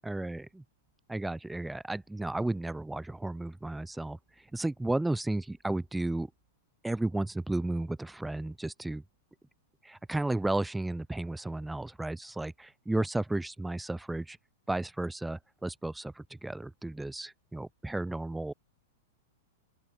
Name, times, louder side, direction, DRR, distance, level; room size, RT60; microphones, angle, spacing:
voice 1, 0.0-0.6 1.1-4.2 4.5-6.3 6.8-9.0 9.8-14.4 14.7-18.5, right 2 dB, 5° right, 0.9 m, -33 dB
open air
hypercardioid pair, 100°, 0 cm